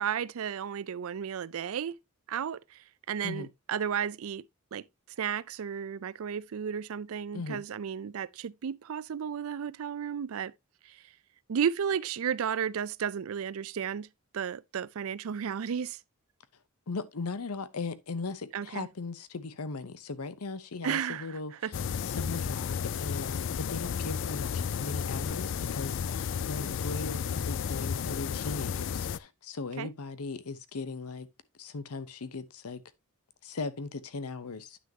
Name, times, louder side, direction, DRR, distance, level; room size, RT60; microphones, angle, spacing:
voice 1, 0.0-2.0 2.3-4.4 4.7-4.8 5.2-10.5 10.8-11.0 11.5-14.1 14.3-16.0 18.5-18.9 20.8-21.7 29.8-29.9, right 8 dB, 70° right, 0.4 m, -33 dB
voice 2, 7.3-7.6 16.9-21.5 22.0-31.3 31.6-32.8 33.4-34.8, left 3 dB, 90° left, 0.8 m, -38 dB
sound 1, 21.7-29.2, left 7 dB, 60° left, 0.4 m, -33 dB
9.6 x 6.1 x 2.8 m
head